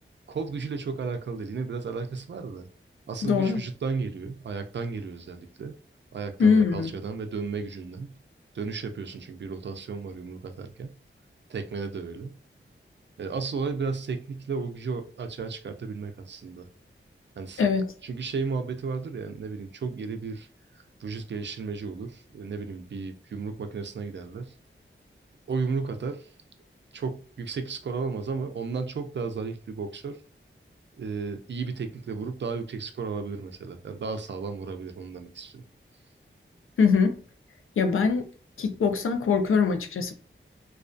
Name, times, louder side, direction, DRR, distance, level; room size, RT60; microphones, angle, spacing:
voice 1, 0.3-2.7 3.1-5.8 6.1-8.2 8.5-11.0 11.5-12.4 13.2-16.7 17.4-17.7 18.0-20.5 20.8-24.5 25.5-26.3 26.9-30.2 31.0-35.6, right 4 dB, 60° right, 0.4 m, -34 dB
voice 2, 3.2-3.6 6.4-6.9 17.6-17.8 36.8-37.2 37.8-38.3 38.6-40.1, left 5 dB, 75° left, 0.4 m, -22 dB
2.3 x 2.2 x 2.5 m
wide cardioid pair, 90°, 21 cm